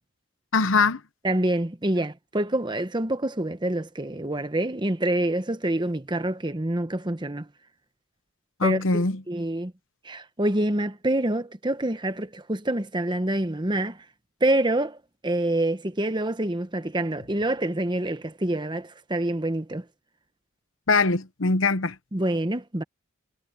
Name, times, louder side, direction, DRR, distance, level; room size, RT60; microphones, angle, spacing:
voice 1, 0.5-1.0 8.6-9.2 20.9-21.9, left 3 dB, 65° left, 1.0 m, -22 dB
voice 2, 1.2-7.5 8.6-9.7 10.0-14.0 14.4-15.0 15.2-19.8 22.1-22.8, right 1 dB, 20° right, 1.0 m, -26 dB
head